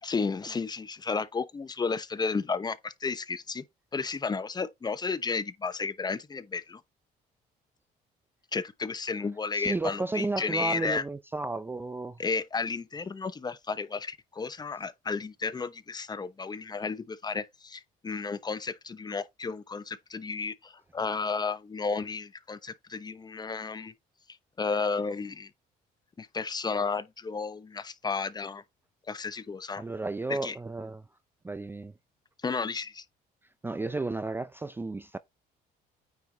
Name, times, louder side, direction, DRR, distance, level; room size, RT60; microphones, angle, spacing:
voice 1, 0.0-3.6 3.9-6.8 8.5-11.0 12.2-23.9 24.6-25.5 26.2-28.6 29.1-29.8 30.3-30.6 32.4-33.0, left 4 dB, 25° left, 0.8 m, -33 dB
voice 2, 9.5-12.2 29.8-31.1 31.4-31.9 33.6-35.2, right 3 dB, 15° right, 0.5 m, -33 dB
9.2 x 4.7 x 3.8 m
cardioid pair, 110°, 17 cm